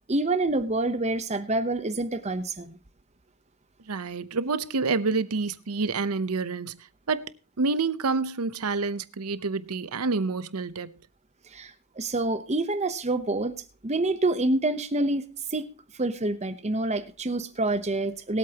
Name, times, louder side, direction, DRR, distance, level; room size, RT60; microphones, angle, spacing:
voice 1, 0.1-2.8 11.5-13.6 13.8-15.2 15.5-15.7 16.0-18.4, right 2 dB, 30° right, 0.9 m, -27 dB
voice 2, 3.9-6.8 7.1-10.9, right 4 dB, 80° right, 0.8 m, -28 dB
22.0 x 8.4 x 2.9 m
head